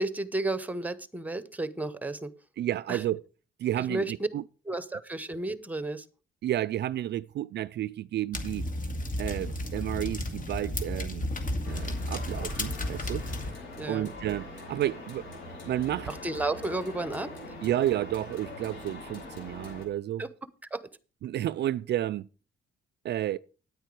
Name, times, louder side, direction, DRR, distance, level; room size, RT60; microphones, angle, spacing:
voice 1, 0.0-2.3 2.9-3.0 3.8-4.3 4.7-6.1 13.8-14.1 16.1-17.3 20.2-20.3 20.7-20.9, right 2 dB, 10° right, 1.0 m, -32 dB
voice 2, 2.6-3.2 3.6-4.4 6.4-8.6 9.2-11.3 11.6-13.3 13.9-15.3 15.7-16.1 17.6-20.2 21.2-22.3 23.0-23.4, right 12 dB, 60° right, 0.4 m, -31 dB
sound 1, 8.3-13.5, left 1 dB, 45° left, 2.2 m, -33 dB
sound 2, 11.6-19.9, left 2 dB, 75° left, 6.8 m, -43 dB
9.6 x 9.2 x 4.8 m
cardioid pair, 90°, 20 cm